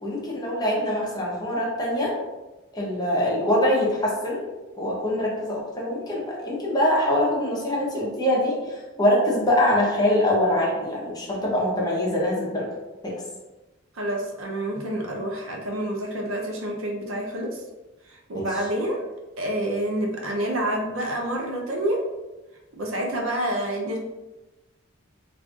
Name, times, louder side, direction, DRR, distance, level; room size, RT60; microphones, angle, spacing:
voice 1, 0.0-2.1 2.7-4.4 4.8-8.6 9.0-12.7 13.0-13.1 18.3-18.5, left 1 dB, 20° left, -4 dB, 0.7 m, -23 dB
voice 2, 13.9-17.6 18.3-19.0 19.4-22.0 22.7-24.0, right 1 dB, 75° right, -1 dB, 0.6 m, -28 dB
2.5 x 2.4 x 3.6 m, 1.1 s
head